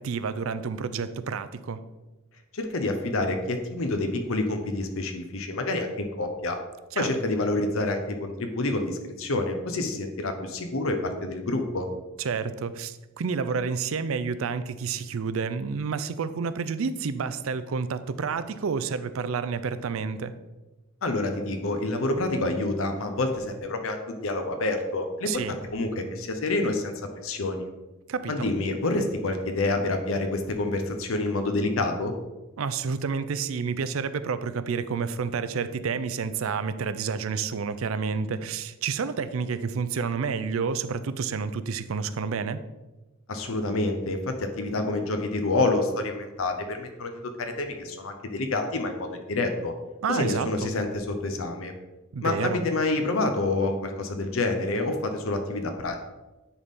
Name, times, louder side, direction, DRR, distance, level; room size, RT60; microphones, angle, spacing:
voice 1, 0.0-1.8 6.9-7.1 12.2-20.3 25.2-25.5 28.1-28.5 32.6-42.6 50.0-50.7 52.1-52.6, right 5 dB, 70° right, 13 dB, 0.4 m, -29 dB
voice 2, 2.5-6.6 7.0-11.9 21.0-26.9 27.2-27.7 28.3-32.1 43.3-49.7 50.1-51.7 52.2-56.0, left 2 dB, 70° left, 5 dB, 0.7 m, -28 dB
9.6 x 4.1 x 3.6 m, 1.1 s
head